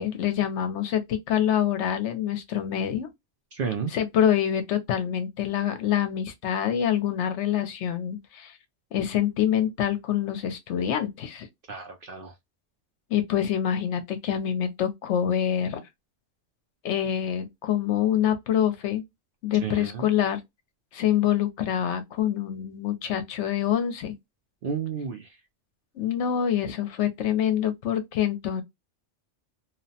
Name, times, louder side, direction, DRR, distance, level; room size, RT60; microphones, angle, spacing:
voice 1, 0.0-3.1 3.9-8.6 8.9-11.5 13.1-15.8 16.8-19.0 19.4-20.4 20.9-24.1 25.9-28.6, left 10 dB, 70° left, 0.9 m, -26 dB
voice 2, 3.5-3.9 11.7-12.3 19.6-20.1 24.6-25.4, right 6 dB, 60° right, 0.6 m, -32 dB
2.8 x 2.0 x 2.7 m
omnidirectional pair, 1.3 m